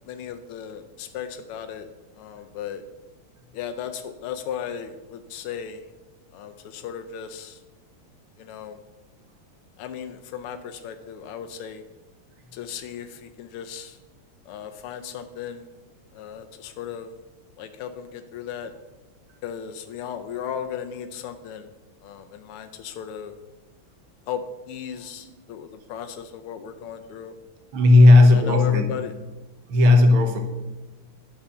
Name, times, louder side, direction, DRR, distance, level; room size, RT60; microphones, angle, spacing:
voice 1, 0.1-1.9 2.1-2.8 3.5-5.9 6.3-7.6 8.4-8.8 9.8-11.8 12.5-14.0 14.4-15.7 16.1-17.1 17.6-18.7 19.4-21.7 22.0-23.4 24.3-27.3 28.0-29.1, left 8 dB, 90° left, 7 dB, 1.6 m, -36 dB
voice 2, 27.7-28.9 29.7-30.4, left 2 dB, 70° right, 5 dB, 2.0 m, -14 dB
10.0 x 5.7 x 7.0 m, 1.1 s
omnidirectional pair, 2.4 m